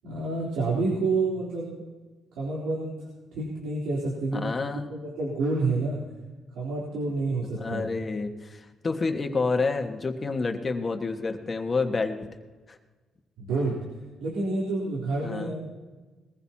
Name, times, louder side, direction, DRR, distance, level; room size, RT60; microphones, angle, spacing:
voice 1, 0.0-1.7 2.4-3.0 3.3-6.0 6.6-7.9 13.4-13.8 14.2-15.6, right 3 dB, 90° right, -5 dB, 3.6 m, -28 dB
voice 2, 4.3-4.9 7.6-12.3 12.7-12.8 15.2-15.5, left 4 dB, 35° left, 5 dB, 1.6 m, -29 dB
21.5 x 15.0 x 2.9 m, 1.3 s
cardioid pair, 90°, 0 cm